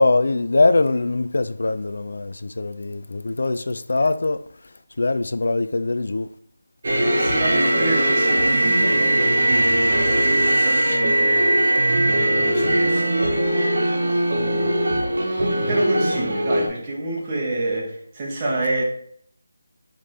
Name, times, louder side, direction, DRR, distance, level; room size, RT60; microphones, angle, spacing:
voice 1, 0.0-4.4 5.0-6.3, left 2 dB, 60° left, 0.4 m, -22 dB
sound 1, 6.8-16.7, right 1 dB, 50° right, 1.4 m, -20 dB
voice 2, 7.0-13.2 14.3-14.8 15.7-18.8, right 2 dB, 20° right, 1.3 m, -28 dB
4.9 x 3.6 x 5.7 m
figure-of-eight pair, 175°, 0 cm